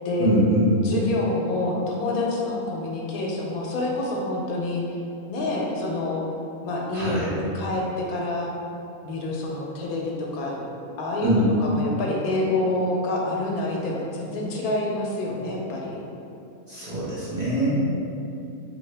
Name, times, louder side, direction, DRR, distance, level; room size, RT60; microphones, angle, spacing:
voice 1, 0.2-0.7 6.9-7.4 11.2-11.5 16.7-17.8, right 1 dB, 35° right, -12 dB, 0.8 m, -23 dB
voice 2, 0.8-4.8 5.3-6.2 6.6-8.5 9.0-10.7 11.0-16.0 17.7-17.8, left 2 dB, 80° left, -2 dB, 1.0 m, -27 dB
3.3 x 2.7 x 3.2 m, 2.7 s
omnidirectional pair, 1.5 m